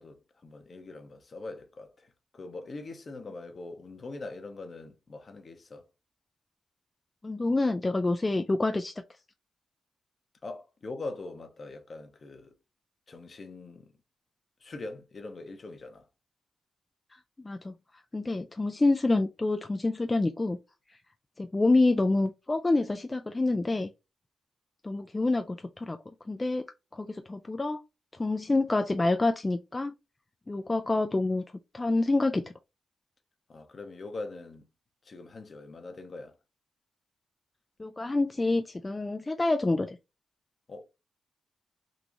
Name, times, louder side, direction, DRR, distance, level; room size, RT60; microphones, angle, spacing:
voice 1, 0.0-5.9 10.4-12.6 13.1-13.9 14.6-16.1 33.5-34.7 35.0-36.3 40.7-40.8, left 3 dB, 50° left, 0.9 m, -42 dB
voice 2, 7.2-8.9 17.4-17.7 18.1-20.6 21.4-23.9 24.8-26.0 26.3-26.6 26.9-27.8 28.2-29.9 30.5-31.4 31.7-32.4 37.8-40.0, left 2 dB, 30° left, 0.4 m, -27 dB
3.9 x 2.4 x 2.9 m
supercardioid pair, 50°, 0 cm